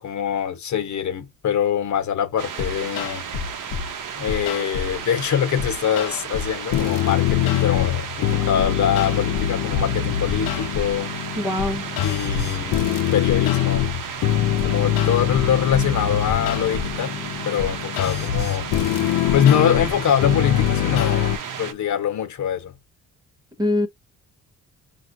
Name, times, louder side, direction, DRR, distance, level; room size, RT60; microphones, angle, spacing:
voice 1, 0.0-3.2 4.2-11.1 12.0-12.9 13.1-13.9 14.3-17.2 17.4-18.7 19.3-22.7, left 8 dB, 60° left, 1.1 m, -24 dB
sound 1, 2.4-21.7, right 7 dB, 70° right, 1.0 m, -33 dB
sound 2, 2.6-3.9 4.3-5.0 5.6-21.4, left 11 dB, 80° left, 0.7 m, -24 dB
voice 2, 11.4-11.8 23.6-23.9, left 1 dB, 10° right, 0.8 m, -22 dB
5.7 x 2.5 x 2.7 m
cardioid pair, 95°, 33 cm